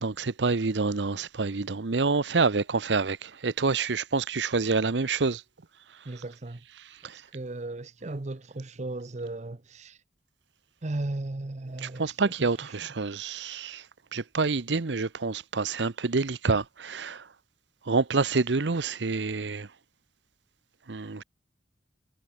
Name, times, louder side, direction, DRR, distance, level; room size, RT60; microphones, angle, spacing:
voice 1, 0.0-5.4 7.0-7.2 11.8-13.8 14.1-17.3 17.9-19.7 20.9-21.2, right 4 dB, 85° right, 0.8 m, -27 dB
voice 2, 6.0-6.6 7.1-10.0 10.8-12.7, right 2 dB, 40° right, 0.8 m, -36 dB
head